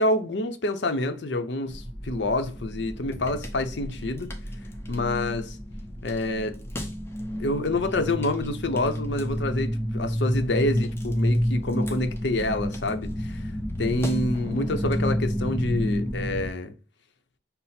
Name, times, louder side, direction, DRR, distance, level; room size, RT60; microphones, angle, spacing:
voice 1, 0.0-4.3 4.9-5.6 6.0-6.6 7.4-13.4 13.8-16.7, left 2 dB, 65° left, 0.6 m, -27 dB
sound 1, 1.7-16.5, equal, 15° left, 0.6 m, -30 dB
5.7 x 2.0 x 4.2 m
head